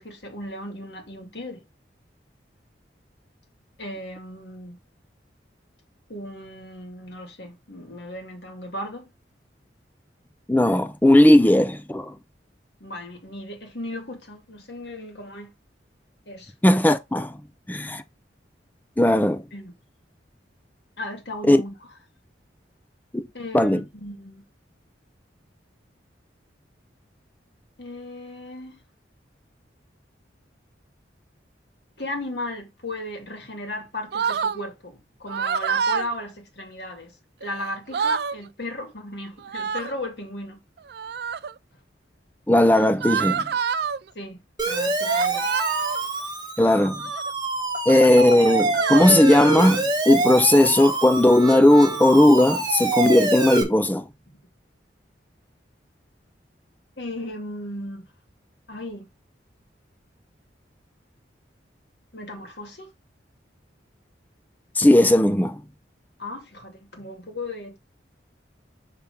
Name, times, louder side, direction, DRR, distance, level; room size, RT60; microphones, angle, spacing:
voice 1, 0.0-1.6 3.8-4.8 6.1-9.1 12.8-15.5 16.3-16.5 19.5-19.7 21.0-21.8 23.3-24.4 27.8-28.8 32.0-37.1 37.4-40.6 44.1-45.5 57.0-58.1 58.7-59.1 62.1-62.9 66.2-67.8, left 1 dB, 65° left, 2.3 m, -36 dB
voice 2, 10.5-12.1 16.6-17.4 17.7-18.0 19.0-19.4 21.5-21.6 23.1-23.2 23.5-23.8 42.5-43.5 46.6-47.0 47.9-54.1 64.8-65.6, left 1 dB, 10° left, 0.5 m, -17 dB
sound 1, 34.1-34.6 35.3-36.1 37.4-37.5 37.8-38.4 39.4-40.0 40.9-41.5 43.0-44.0 45.0-46.0 46.9-47.3 48.2-49.0, right 7 dB, 55° right, 0.3 m, -27 dB
Siren, 44.6-53.6, right 3 dB, 20° right, 1.3 m, -26 dB
6.0 x 3.5 x 5.2 m
head